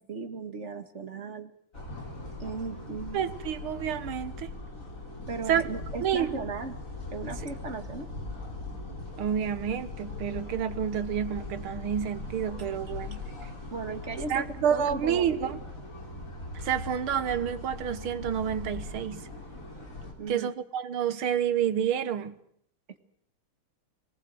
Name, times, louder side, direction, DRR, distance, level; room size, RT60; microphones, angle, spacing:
voice 1, 0.1-1.5 2.4-3.3 5.3-6.7 7.1-8.1 13.7-15.6 20.2-20.5, right 4 dB, 35° right, 1.9 m, -36 dB
sound 1, 1.7-20.1, left 2 dB, 35° left, 4.7 m, -40 dB
voice 2, 3.1-4.5 5.5-5.6 6.0-6.4 9.2-13.2 14.3-15.6 16.6-19.3 20.3-22.4, right 8 dB, 75° right, 2.1 m, -29 dB
24.5 x 19.0 x 7.7 m
omnidirectional pair, 2.4 m